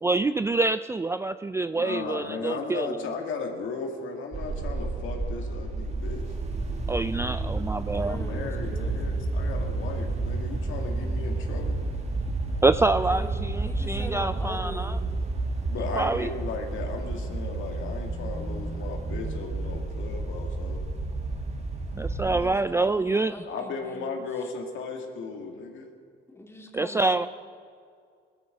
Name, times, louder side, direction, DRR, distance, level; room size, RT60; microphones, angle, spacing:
voice 1, 0.0-3.0 6.9-8.2 12.6-15.0 16.0-16.3 22.0-23.3 26.7-27.3, right 3 dB, 15° right, 12 dB, 0.3 m, -26 dB
voice 2, 1.7-6.2 8.1-11.8 15.7-20.8 23.5-25.9, left 4 dB, 80° left, 2 dB, 2.2 m, -36 dB
sound 1, 4.3-22.5, right 2 dB, 35° right, 1.9 m, -31 dB
voice 3, 7.8-9.4 13.1-15.1 22.2-24.1 26.3-27.3, left 1 dB, 10° left, 1 dB, 2.6 m, -42 dB
18.0 x 13.0 x 5.2 m, 2.2 s
cardioid pair, 90°, 20 cm